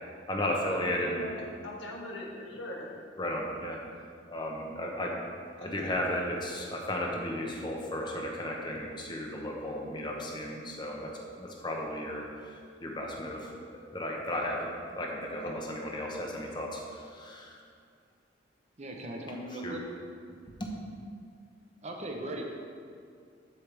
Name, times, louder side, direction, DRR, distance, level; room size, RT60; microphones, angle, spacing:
voice 1, 0.3-1.2 3.2-3.8 4.3-5.1 5.6-13.5 13.9-14.7 14.9-17.6 19.5-19.8, left 1 dB, 25° left, 0 dB, 1.0 m, -34 dB
voice 2, 1.2-2.9 5.6-5.9 15.3-15.5, left 1 dB, 90° left, -2 dB, 1.4 m, -42 dB
voice 3, 18.8-19.8 21.8-22.4, right 1 dB, 40° right, 1 dB, 0.9 m, -38 dB
8.5 x 7.7 x 3.4 m, 2.2 s
head